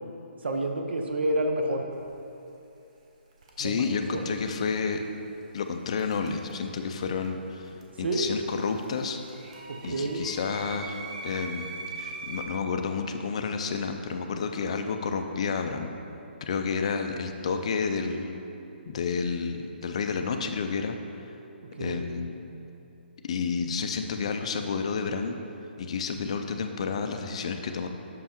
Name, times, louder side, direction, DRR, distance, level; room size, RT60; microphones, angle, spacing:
voice 1, 0.4-1.8 3.6-3.8 4.1-4.2 8.0-8.3 9.7-10.2 21.8-22.1, right 1 dB, 70° right, 3 dB, 0.8 m, -29 dB
sound 1, 1.9-2.1 3.3-3.9 6.0-7.0 7.2-12.5, right 4 dB, 35° right, 0.7 m, -42 dB
voice 2, 3.6-5.0 5.5-7.7 8.0-9.2 9.8-11.7 12.0-15.9 16.5-18.4 18.9-21.0 21.8-22.4 23.2-25.4 25.8-27.9, left 5 dB, 35° left, 6 dB, 0.4 m, -30 dB
6.2 x 5.6 x 4.4 m, 2.8 s
hypercardioid pair, 175°, 6 cm